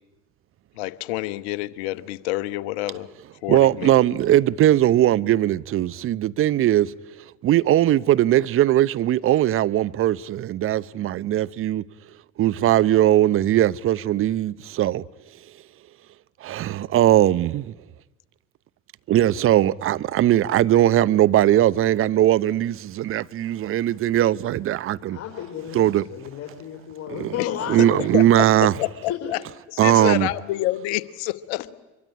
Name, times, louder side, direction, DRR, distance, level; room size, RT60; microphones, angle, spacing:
voice 1, 0.8-3.1 3.4-4.2 27.4-27.5 27.8-29.4 29.7-31.7, left 17 dB, 65° left, 1.1 m, -28 dB
voice 2, 3.5-6.9 7.4-11.8 12.4-15.0 16.4-17.7 19.1-25.2 25.7-26.0 27.1-27.3 27.7-28.7 29.8-30.3, right 13 dB, 40° right, 0.9 m, -19 dB
voice 3, 25.1-28.1 29.2-29.3 30.0-30.2, left 10 dB, 40° left, 4.2 m, -33 dB
24.5 x 23.0 x 10.0 m
hypercardioid pair, 75°, 35 cm